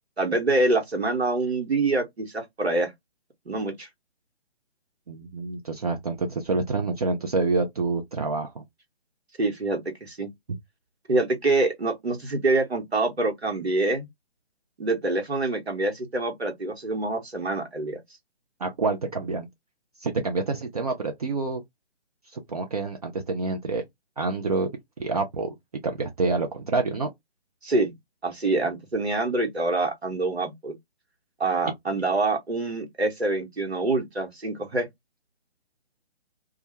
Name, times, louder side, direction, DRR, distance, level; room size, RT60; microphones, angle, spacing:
voice 1, 0.2-2.9 3.5-3.9 9.4-10.3 11.1-14.0 14.8-18.0 27.6-27.9 28.2-30.7 31.4-34.9, right 2 dB, 85° right, 1.0 m, -25 dB
voice 2, 5.1-8.6 18.6-19.5 20.0-21.6 22.3-23.8 24.2-24.7 25.0-25.5 25.8-27.1, right 3 dB, 40° right, 0.5 m, -27 dB
2.3 x 2.1 x 2.9 m
figure-of-eight pair, 135°, 31 cm